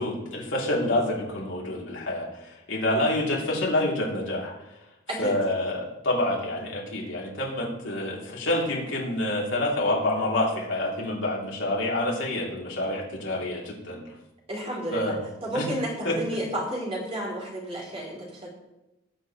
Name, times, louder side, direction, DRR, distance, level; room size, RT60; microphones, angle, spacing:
voice 1, 0.0-4.5 5.2-14.1 14.9-15.2 15.5-15.7 16.0-16.2, left 1 dB, 85° left, -3 dB, 2.9 m, -27 dB
voice 2, 14.5-15.2 15.4-18.5, right 1 dB, 30° right, -2 dB, 3.0 m, -32 dB
17.5 x 8.0 x 3.1 m, 0.94 s
head